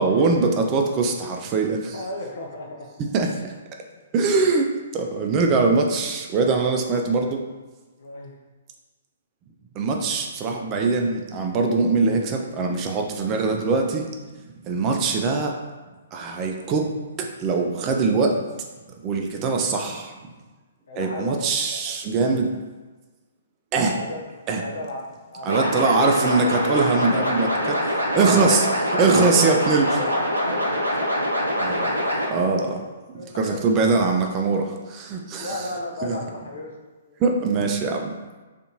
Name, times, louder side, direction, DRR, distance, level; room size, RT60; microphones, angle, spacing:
voice 1, 0.0-2.0 3.1-3.5 4.1-7.4 9.8-14.0 14.6-15.6 16.1-16.9 17.2-18.4 19.0-20.1 21.0-22.5 23.7-24.0 24.5-24.6 25.5-28.7 29.0-29.9 31.6-31.9 32.3-32.8 33.4-35.6 36.0-36.2 37.2-38.2, right 4 dB, 25° right, 2 dB, 0.3 m, -22 dB
voice 2, 1.9-2.9 6.8-7.2 8.0-8.3 20.9-21.8 23.9-24.2 24.6-25.1 25.3-26.3 28.2-28.7 29.1-29.6 29.8-32.9 33.2-33.7 35.3-36.7 37.0-37.2, left 2 dB, 60° left, 0 dB, 0.5 m, -34 dB
sound 1, 25.5-32.3, equal, 80° right, 0.5 m, -24 dB
2.5 x 2.5 x 2.7 m, 1.3 s
figure-of-eight pair, 120°, 0 cm